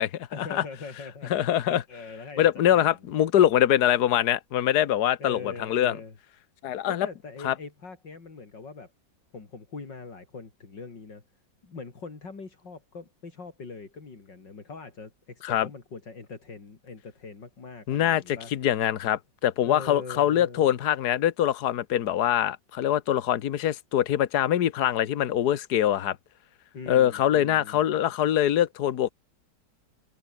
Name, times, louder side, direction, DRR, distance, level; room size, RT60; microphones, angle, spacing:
voice 1, 0.3-3.0 5.2-6.2 6.9-8.9 9.3-11.2 11.6-18.5 19.6-20.8 26.7-27.9, left 4 dB, 80° left, 4.4 m, -42 dB
voice 2, 1.3-1.8 2.4-6.0 6.6-7.1 7.4-7.5 15.4-15.7 17.9-26.2 26.9-29.1, left 11 dB, 65° left, 1.6 m, -23 dB
omnidirectional pair, 1.9 m